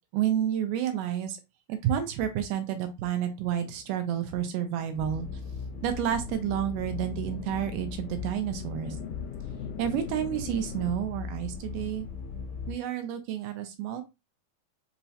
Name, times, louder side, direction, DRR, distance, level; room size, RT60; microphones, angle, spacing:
voice 1, 0.1-1.4 1.7-5.3 5.8-9.0 9.8-12.1 12.7-14.0, right 10 dB, 80° right, 8 dB, 1.9 m, -30 dB
sound 1, 3.3-10.9, left 10 dB, 85° left, 2.3 m, -44 dB
sound 2, 4.9-12.7, left 5 dB, 65° left, 1.8 m, -39 dB
5.6 x 2.0 x 2.7 m, 0.23 s
omnidirectional pair, 4.1 m